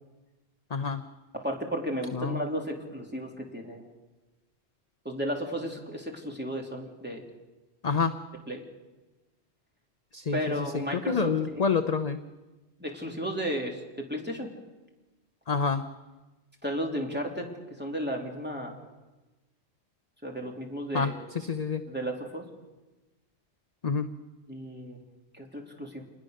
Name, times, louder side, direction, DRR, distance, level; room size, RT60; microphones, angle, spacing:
voice 1, 0.7-1.0 2.1-2.4 7.8-8.1 10.1-12.2 15.5-15.9 20.9-21.8 23.8-24.1, left 5 dB, 40° left, 9 dB, 0.9 m, -28 dB
voice 2, 1.3-3.8 5.0-7.2 8.5-8.6 10.3-11.3 12.8-14.5 16.6-18.8 20.2-21.1 21.9-22.5 24.5-25.0 25.3-26.0, equal, 10° right, 0 dB, 3.3 m, -34 dB
27.5 x 20.5 x 6.6 m, 1.1 s
omnidirectional pair, 1.1 m